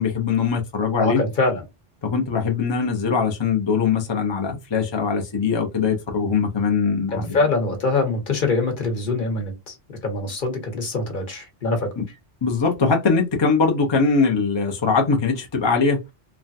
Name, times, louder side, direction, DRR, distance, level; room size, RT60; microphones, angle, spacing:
voice 1, 0.0-1.2 2.0-7.4 12.0-12.1 12.4-16.0, left 5 dB, 35° left, 0.5 m, -21 dB
voice 2, 1.0-1.6 7.1-9.7 10.0-11.9, left 3 dB, 50° left, 1.1 m, -23 dB
3.3 x 2.2 x 2.6 m
omnidirectional pair, 1.2 m